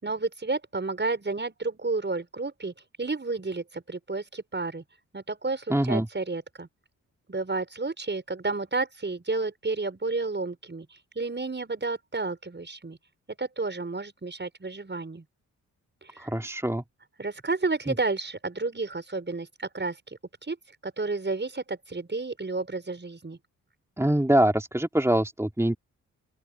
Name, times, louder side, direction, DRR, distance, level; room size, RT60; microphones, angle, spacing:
voice 1, 0.0-4.8 5.1-6.7 7.3-10.9 11.1-13.0 13.4-15.2 16.0-16.3 17.2-20.6 20.8-23.4, right 3 dB, 25° right, 6.3 m, -31 dB
voice 2, 5.7-6.1 16.2-16.8 17.9-18.0 24.0-25.8, right 1 dB, 5° right, 2.8 m, -24 dB
open air
hypercardioid pair, 40°, 41 cm